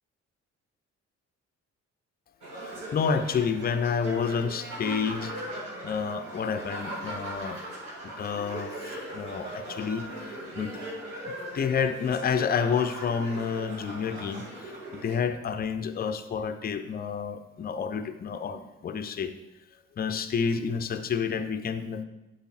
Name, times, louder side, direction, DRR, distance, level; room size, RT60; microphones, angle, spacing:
sound 1, 2.4-15.2, right 1 dB, 65° right, 2.2 m, -39 dB
voice 1, 2.9-5.3 5.8-7.6 8.2-10.0 10.6-10.7 11.5-14.4 15.0-19.3 20.0-22.0, left 6 dB, 25° left, 9 dB, 0.5 m, -29 dB
10.5 x 5.2 x 2.5 m, 1.0 s
figure-of-eight pair, 40°, 38 cm